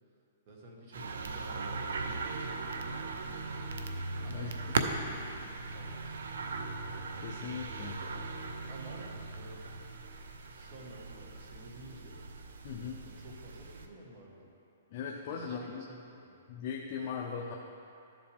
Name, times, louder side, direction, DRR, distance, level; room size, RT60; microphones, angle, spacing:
voice 1, 0.5-3.7 4.2-6.2 8.7-9.8 10.5-12.2 13.0-14.5 15.3-16.4, right 2 dB, 40° right, -2 dB, 1.7 m, -52 dB
sound 1, 0.9-13.9, right 3 dB, 85° right, 0.7 m, -38 dB
voice 2, 4.3-4.8 7.2-8.0 12.6-13.0 14.9-15.8 16.5-17.6, left 6 dB, 40° left, 0 dB, 0.6 m, -39 dB
12.0 x 7.4 x 3.6 m, 2.6 s
hypercardioid pair, 160°, 0 cm